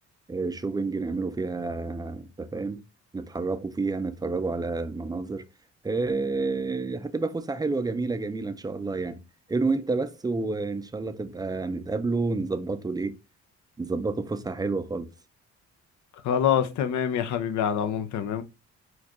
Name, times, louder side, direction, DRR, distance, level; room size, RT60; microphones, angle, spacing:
voice 1, 0.3-2.8 3.1-5.4 5.8-9.2 9.5-13.2 13.8-15.1, right 3 dB, 15° right, 0.4 m, -29 dB
voice 2, 16.2-18.4, left 9 dB, 75° left, 0.6 m, -25 dB
4.4 x 2.3 x 2.9 m
cardioid pair, 90°, 30 cm